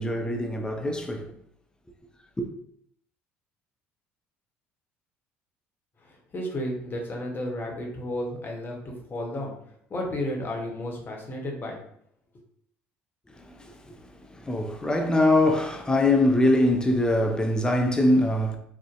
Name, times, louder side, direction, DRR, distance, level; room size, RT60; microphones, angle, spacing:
voice 1, 0.0-1.3 2.4-2.5 13.4-14.0 14.4-18.6, left 1 dB, 15° left, 0.4 m, -23 dB
voice 2, 6.0-9.6 9.9-11.8, left 1 dB, 35° left, 0.8 m, -33 dB
2.6 x 2.1 x 2.4 m
hypercardioid pair, 65°, 6 cm